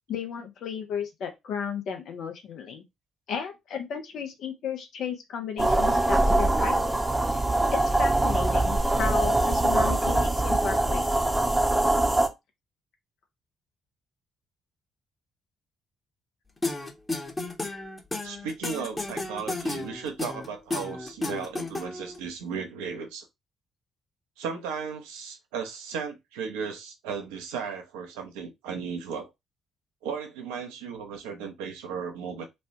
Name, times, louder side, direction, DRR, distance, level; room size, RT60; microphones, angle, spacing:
voice 1, 0.1-2.8 3.3-7.4 7.7-11.1, left 7 dB, 60° left, 0.7 m, -34 dB
sound 1, 5.6-12.3, right 2 dB, 10° right, 0.7 m, -23 dB
sound 2, 16.6-22.2, left 2 dB, 20° left, 1.0 m, -32 dB
voice 2, 18.2-23.3 24.4-29.3 30.0-32.4, right 6 dB, 75° right, 0.6 m, -35 dB
3.1 x 2.3 x 2.7 m
figure-of-eight pair, 45°, 0 cm